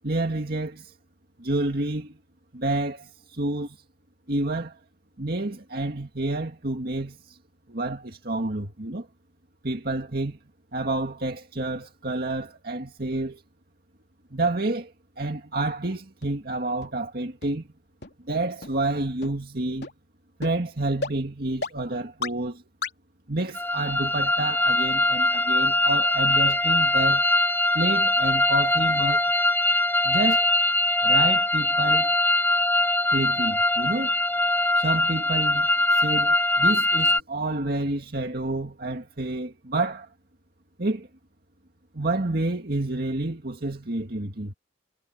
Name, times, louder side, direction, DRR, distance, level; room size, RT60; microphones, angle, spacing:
voice 1, 0.0-0.9 1.4-2.2 2.5-3.8 4.3-4.8 5.2-7.4 7.7-9.1 9.6-10.4 10.7-13.4 14.3-17.7 18.2-19.9 20.4-22.6 23.3-27.3 27.7-29.3 30.0-30.5 31.0-32.1 33.1-34.1 34.8-40.1 40.8-41.1 41.9-44.5, right 2 dB, 55° right, 2.2 m, -29 dB
sound 1, 16.2-16.3 16.8-16.9 17.4-17.5 18.0-18.1 18.6-18.7 19.2-19.3 19.8-19.9 20.4-20.5 21.0-21.1 21.6-21.7 22.2-22.3 22.8-22.9, left 3 dB, 60° left, 3.5 m, -31 dB
sound 2, 23.5-37.2, left 1 dB, 10° left, 3.0 m, -22 dB
head